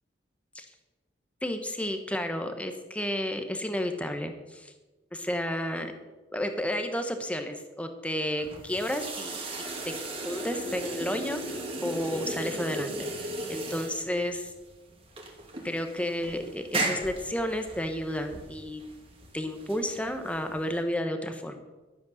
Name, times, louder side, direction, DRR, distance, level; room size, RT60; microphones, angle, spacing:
voice 1, 1.4-4.7 5.1-5.9 6.3-9.9 10.2-14.5 15.6-18.8 19.3-21.6, left 1 dB, 5° left, 6 dB, 1.1 m, -32 dB
sound 1, 8.4-20.8, right 2 dB, 30° right, 2.0 m, -36 dB
12.5 x 8.2 x 6.4 m, 1.2 s
head